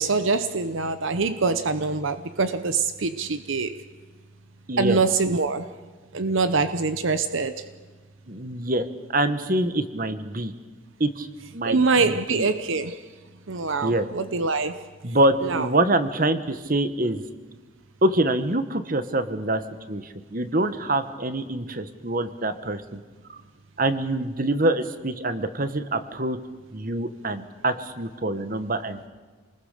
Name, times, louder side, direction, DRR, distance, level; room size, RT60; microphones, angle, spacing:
voice 1, 0.0-3.8 4.8-5.7 6.1-7.6 11.6-13.0 13.5-14.8 15.4-15.7, right 4 dB, 70° right, 11 dB, 0.9 m, -24 dB
voice 2, 4.7-5.0 8.3-10.5 11.0-11.3 11.5-12.5 13.8-14.1 15.0-17.2 18.0-19.6 19.9-23.0 23.3-23.4 23.8-26.4 26.7-29.1, right 1 dB, 40° right, 10 dB, 1.3 m, -25 dB
28.5 x 20.5 x 6.7 m, 1.4 s
head